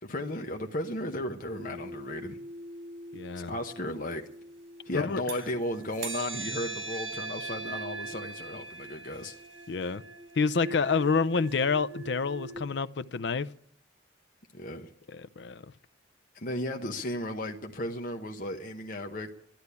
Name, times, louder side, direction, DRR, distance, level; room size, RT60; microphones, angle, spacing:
voice 1, 0.0-2.4 3.4-4.2 4.8-9.3 14.5-14.9 16.3-19.3, left 1 dB, 45° left, 1.0 m, -35 dB
sound 1, 1.5-5.5 5.9-12.6, right 3 dB, 80° right, 2.5 m, -41 dB
voice 2, 3.1-3.5 4.9-5.2 9.7-10.0 10.4-13.5 15.1-15.6, left 5 dB, 65° left, 0.5 m, -28 dB
12.0 x 11.5 x 8.2 m
head